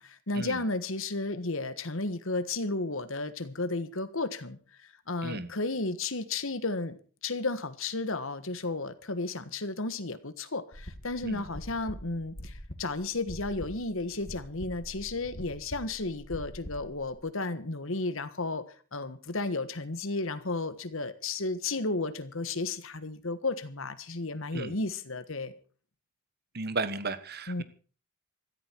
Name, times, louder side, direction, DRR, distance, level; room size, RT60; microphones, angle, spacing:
voice 1, 0.0-7.0 7.2-18.6 18.9-25.5 27.5-27.6, left 3 dB, 60° left, 13 dB, 1.4 m, -33 dB
sound 1, 10.7-17.2, equal, 45° left, 2.2 m, -44 dB
voice 2, 26.5-27.6, right 3 dB, 45° right, 12 dB, 1.3 m, -34 dB
17.0 x 14.5 x 4.6 m, 0.40 s
head